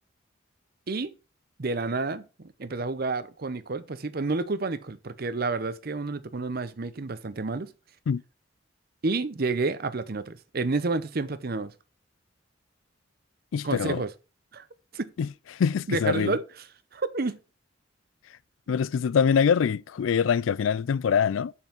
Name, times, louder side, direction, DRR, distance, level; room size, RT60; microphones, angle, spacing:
voice 1, 1.6-7.7 9.0-11.7 13.6-14.1 14.5-14.6 14.9-15.1 15.9-16.4 16.9-17.4, right 3 dB, 50° right, 0.7 m, -30 dB
voice 2, 13.5-14.0 15.2-16.3 18.7-21.5, left 7 dB, 80° left, 0.3 m, -24 dB
7.2 x 5.6 x 5.8 m
head